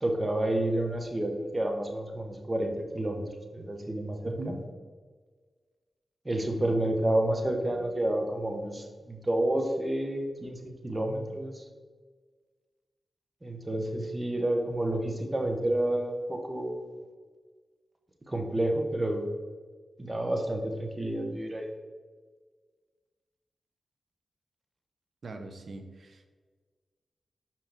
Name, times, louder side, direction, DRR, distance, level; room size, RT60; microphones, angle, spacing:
voice 1, 0.0-3.2 3.5-4.6 6.2-11.6 13.4-16.9 18.3-19.3 20.0-21.7, right 1 dB, 25° right, 3 dB, 1.2 m, -30 dB
voice 2, 4.2-4.6 25.2-26.3, right 2 dB, 65° right, 6 dB, 0.8 m, -40 dB
5.7 x 5.1 x 3.6 m, 1.5 s
supercardioid pair, 40°, 0 cm